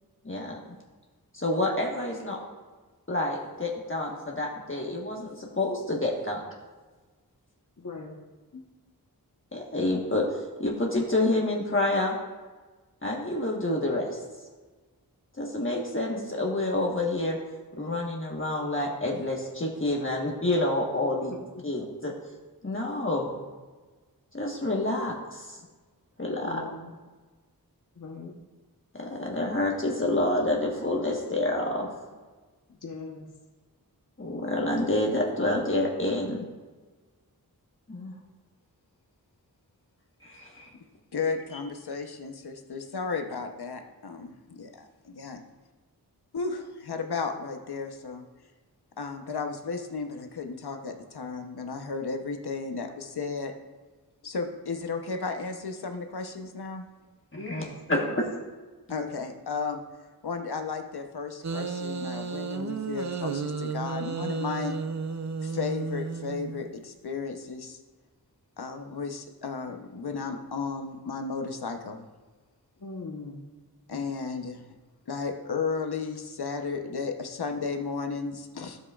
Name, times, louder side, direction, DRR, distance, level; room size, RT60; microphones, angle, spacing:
voice 1, 0.2-0.6 1.3-2.4 3.1-6.4 9.5-12.1 13.0-14.2 15.4-17.4 17.8-21.3 21.6-22.1 22.6-23.3 24.3-25.6 26.2-26.7 28.9-31.9 34.2-36.4 37.9-38.1 40.2-40.7 57.3-58.0, left 2 dB, 35° left, -2 dB, 1.4 m, -28 dB
voice 2, 7.8-8.1 8.5-8.6 21.3-21.4 26.4-26.9 27.9-28.3 32.7-33.3 57.3-58.2 65.5-65.6 72.8-73.4, left 3 dB, 55° left, -2 dB, 1.1 m, -40 dB
voice 3, 41.1-45.4 46.3-48.2 49.0-53.5 54.2-56.9 58.9-64.8 65.4-67.8 68.6-72.1 73.9-74.6 75.1-78.8, left 4 dB, 85° left, 5 dB, 0.9 m, -34 dB
sound 1, 61.4-66.7, right 5 dB, 50° right, 0.6 m, -33 dB
13.0 x 7.4 x 2.4 m, 1.3 s
wide cardioid pair, 60°, 38 cm